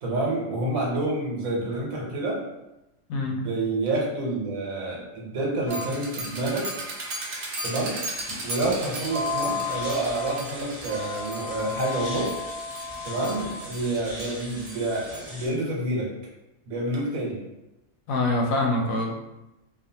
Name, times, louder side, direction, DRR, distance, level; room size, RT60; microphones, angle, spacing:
voice 1, 0.0-2.4 3.2-6.7 7.6-7.9 8.4-12.3 13.0-16.1 16.7-17.4, right 2 dB, 85° right, -3 dB, 1.3 m, -28 dB
voice 2, 3.1-3.5 8.3-8.7 18.1-19.1, left 2 dB, 85° left, 1 dB, 1.0 m, -26 dB
sound 1, 5.7-15.3, left 1 dB, 60° right, 0.6 m, -33 dB
sound 2, 8.1-15.5, equal, 5° right, 0.9 m, -42 dB
2.5 x 2.5 x 2.7 m, 0.96 s
omnidirectional pair, 1.4 m